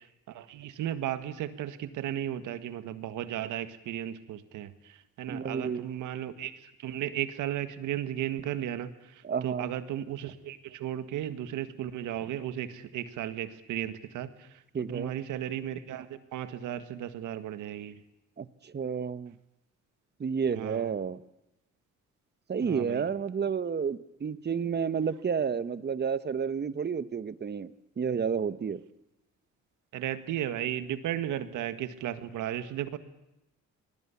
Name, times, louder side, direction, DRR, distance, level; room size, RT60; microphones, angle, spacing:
voice 1, 0.0-18.0 20.5-20.9 22.6-23.0 29.9-33.0, right 11 dB, 85° right, 12 dB, 1.8 m, -35 dB
voice 2, 5.3-5.8 9.2-9.7 14.7-15.1 18.4-19.3 20.2-21.2 22.5-27.7 28.0-28.8, right 6 dB, 35° right, 16 dB, 1.2 m, -31 dB
26.5 x 20.5 x 8.5 m, 0.88 s
cardioid pair, 90°, 30 cm